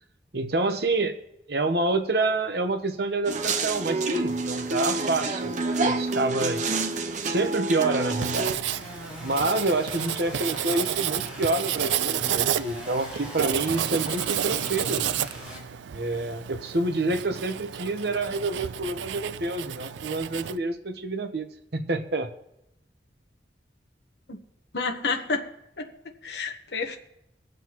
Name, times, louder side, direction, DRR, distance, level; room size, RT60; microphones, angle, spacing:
voice 1, 0.3-1.2 1.5-6.9 7.3-8.5 9.2-15.0 15.9-22.3, right 2 dB, 65° right, 7 dB, 1.0 m, -28 dB
sound 1, 3.3-8.6, right 3 dB, 40° right, 0.7 m, -28 dB
sound 2, 8.1-15.6, equal, 5° right, 4.3 m, -41 dB
Writing, 8.2-20.6, right 10 dB, 85° right, 0.4 m, -31 dB
voice 2, 24.7-25.4 25.8-25.9 26.2-27.0, left 4 dB, 70° left, 4 dB, 1.2 m, -29 dB
22.5 x 7.8 x 3.0 m, 0.83 s
head